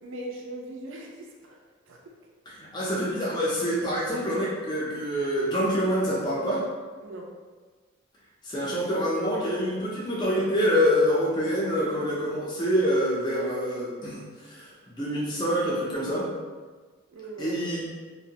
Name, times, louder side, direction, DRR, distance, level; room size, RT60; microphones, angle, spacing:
voice 1, 0.0-1.6 1.9-2.1 7.0-7.3 17.1-17.6, right 1 dB, 75° right, 0 dB, 0.4 m, -40 dB
voice 2, 2.5-6.7 8.4-14.7 15.0-16.3 17.4-17.9, equal, 20° left, -6 dB, 0.4 m, -26 dB
2.5 x 2.1 x 2.8 m, 1.4 s
head